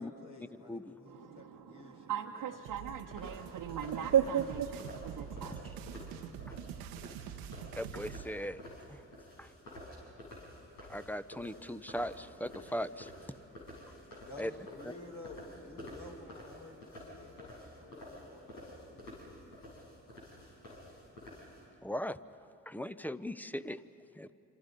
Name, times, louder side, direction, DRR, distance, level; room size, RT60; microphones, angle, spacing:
voice 1, 0.0-2.6 14.2-20.5, left 2 dB, 60° left, 1 dB, 4.5 m, -52 dB
voice 2, 1.1-5.6, right 9 dB, 60° right, 0 dB, 1.1 m, -35 dB
sound 1, 2.6-8.3, right 8 dB, 85° right, 1.0 m, -45 dB
sound 2, 3.1-21.6, left 1 dB, 85° left, 7.0 m, -50 dB
voice 3, 7.8-8.6 8.9-9.0 9.4-9.5 10.9-13.1 14.4-14.5 21.8-22.2 22.7-23.8, equal, 5° left, 14 dB, 0.8 m, -38 dB
26.5 x 26.5 x 5.3 m, 3.0 s
hypercardioid pair, 50°, 37 cm